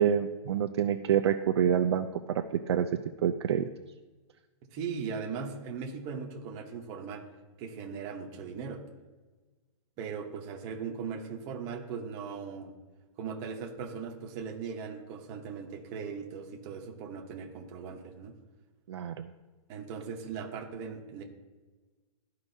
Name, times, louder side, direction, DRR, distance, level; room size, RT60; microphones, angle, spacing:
voice 1, 0.0-2.9 3.2-3.6 18.9-19.3, right 9 dB, 50° right, 5 dB, 0.4 m, -27 dB
voice 2, 4.7-7.3 7.6-8.9 10.0-12.7 13.2-18.4 19.7-21.2, right 6 dB, 20° right, 0 dB, 0.8 m, -39 dB
13.0 x 4.7 x 2.7 m, 1.3 s
hypercardioid pair, 170°, 17 cm